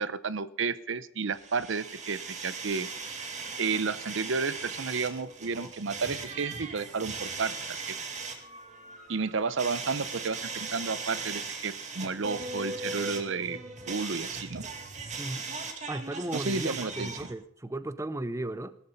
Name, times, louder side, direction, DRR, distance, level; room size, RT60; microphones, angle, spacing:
voice 1, 0.0-2.9 3.6-7.5 7.8-8.0 9.1-13.6 13.9-14.6 16.3-17.1, right 4 dB, 65° right, 16 dB, 0.7 m, -32 dB
sound 1, 1.3-17.3, right 4 dB, 35° right, 2.2 m, -38 dB
voice 2, 15.2-15.5 15.9-18.8, right 1 dB, 15° right, 14 dB, 0.5 m, -35 dB
17.0 x 13.0 x 5.3 m, 0.66 s
head